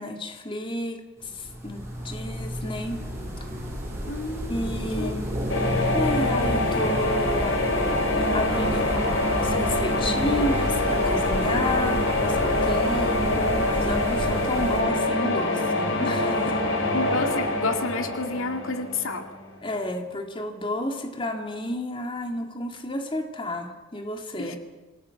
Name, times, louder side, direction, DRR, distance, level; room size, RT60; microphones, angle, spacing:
voice 1, 0.0-3.0 4.5-5.4 5.9-7.7 8.3-16.6 17.5-17.6 19.6-24.6, left 1 dB, 25° left, 4 dB, 2.2 m, -31 dB
sound 1, 1.2-14.8, equal, 15° right, 6.7 m, -31 dB
voice 2, 4.1-5.1 16.9-19.3 24.4-24.6, left 3 dB, 85° left, 6 dB, 2.1 m, -30 dB
sound 2, 5.5-19.3, left 2 dB, 65° left, 3.6 m, -25 dB
sound 3, 8.5-20.3, right 1 dB, 85° right, 4.0 m, -40 dB
26.5 x 18.0 x 5.9 m, 1.2 s
head